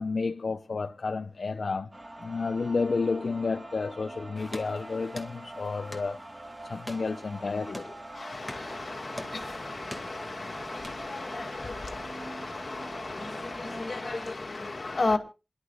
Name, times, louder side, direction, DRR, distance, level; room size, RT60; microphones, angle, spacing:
voice 1, 0.0-1.9 2.2-6.2 6.6-7.8, left 4 dB, 70° left, 0.6 m, -31 dB
sound 1, 1.9-14.3, right 1 dB, 30° right, 1.6 m, -44 dB
sound 2, 4.4-11.7, left 1 dB, 5° left, 2.0 m, -46 dB
voice 2, 8.1-15.2, left 3 dB, 50° left, 2.3 m, -34 dB
27.5 x 11.5 x 2.4 m
wide cardioid pair, 90°, 0 cm